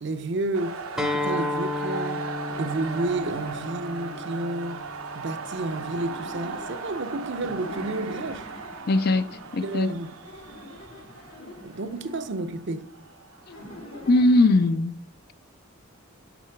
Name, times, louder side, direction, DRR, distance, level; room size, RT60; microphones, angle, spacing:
voice 1, 0.0-2.3 2.6-4.8 5.1-8.5 9.6-10.1 11.6-12.9, right 2 dB, 55° right, 0.6 m, -31 dB
sound 1, 0.5-14.3, right 5 dB, 90° right, 0.9 m, -38 dB
Acoustic guitar, 1.0-6.2, left 2 dB, ahead, 0.6 m, -33 dB
sound 2, 2.4-4.6 5.5-9.6 10.2-12.4 13.5-14.7, left 2 dB, 80° left, 2.5 m, -44 dB
voice 2, 8.9-9.9 14.1-15.0, left 2 dB, 45° left, 0.4 m, -20 dB
6.6 x 6.0 x 5.8 m
head